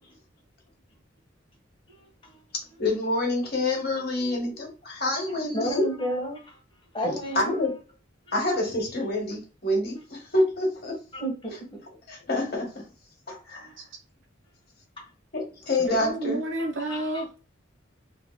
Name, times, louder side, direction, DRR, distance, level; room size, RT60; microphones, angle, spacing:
voice 1, 2.8-5.9 7.3-7.7 8.3-11.0 12.1-12.8 13.3-13.7 15.3-16.4, left 2 dB, 50° left, 1.5 m, -27 dB
voice 2, 5.3-6.6 6.9-7.7 11.1-11.8 13.6-13.7 15.0-15.1 16.9-17.2, equal, 25° left, 1.5 m, -32 dB
voice 3, 15.9-17.4, right 1 dB, 70° right, 0.9 m, -30 dB
3.7 x 3.6 x 2.2 m
head